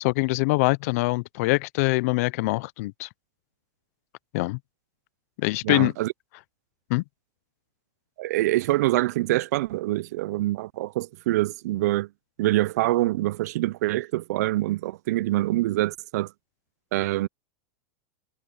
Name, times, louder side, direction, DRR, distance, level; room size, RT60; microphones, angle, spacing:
voice 1, 0.0-3.1 4.3-4.6 5.4-5.9 6.9-7.0, left 24 dB, 60° left, 0.6 m, -24 dB
voice 2, 5.6-6.1 8.2-12.1 12.4-16.3 16.9-17.3, right 17 dB, 70° right, 0.5 m, -25 dB
hypercardioid pair, 120°, 9 cm